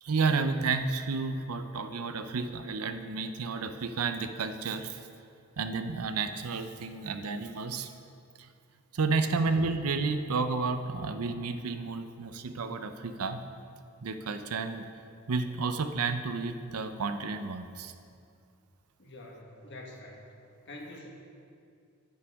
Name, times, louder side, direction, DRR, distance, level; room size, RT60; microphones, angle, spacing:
voice 1, 0.0-5.0 5.6-7.9 8.4-8.5 8.9-13.4 14.0-14.8 15.3-17.9, right 4 dB, 85° right, 9 dB, 0.6 m, -31 dB
voice 2, 19.0-20.2 20.6-21.1, left 1 dB, 55° left, 0 dB, 1.4 m, -46 dB
10.0 x 9.9 x 3.5 m, 2.4 s
head